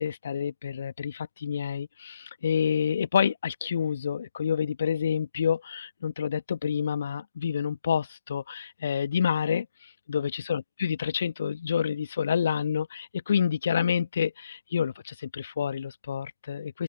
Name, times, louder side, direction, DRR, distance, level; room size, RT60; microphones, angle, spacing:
voice 1, 0.0-16.8, left 8 dB, 70° left, 1.2 m, -28 dB
open air
figure-of-eight pair, 90°, 0 cm